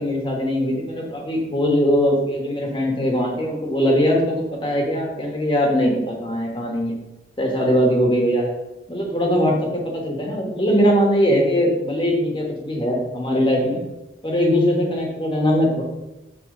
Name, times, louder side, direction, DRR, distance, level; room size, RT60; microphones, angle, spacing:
voice 1, 0.0-6.9 7.4-8.5 8.9-13.8 14.2-15.8, equal, 25° left, 0 dB, 1.3 m, -21 dB
6.4 x 3.9 x 5.4 m, 1.0 s
head